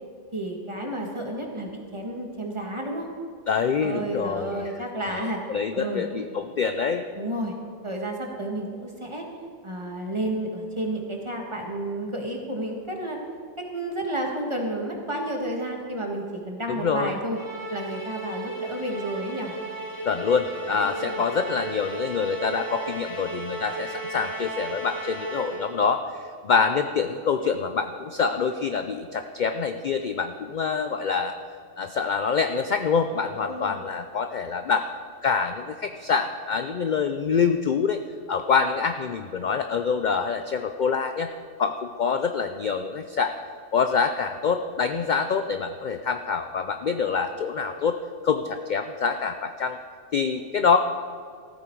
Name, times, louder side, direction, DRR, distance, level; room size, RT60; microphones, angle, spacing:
voice 1, 0.3-3.1 3.8-5.4 5.7-6.1 7.2-7.6 7.8-9.3 9.6-13.2 13.6-17.4 17.7-19.5 20.6-21.3 33.4-33.8, right 1 dB, 25° right, 1 dB, 1.7 m, -31 dB
voice 2, 3.5-4.7 5.1-7.1 16.7-17.2 20.0-31.4 31.8-34.9 35.2-38.0 38.3-41.3 41.6-43.4 43.7-48.0 48.2-49.8 50.1-50.8, left 5 dB, 55° left, 8 dB, 0.6 m, -26 dB
Musical instrument, 17.3-25.9, right 2 dB, 85° left, 2.9 m, -35 dB
15.0 x 13.0 x 4.6 m, 2.3 s
omnidirectional pair, 1.3 m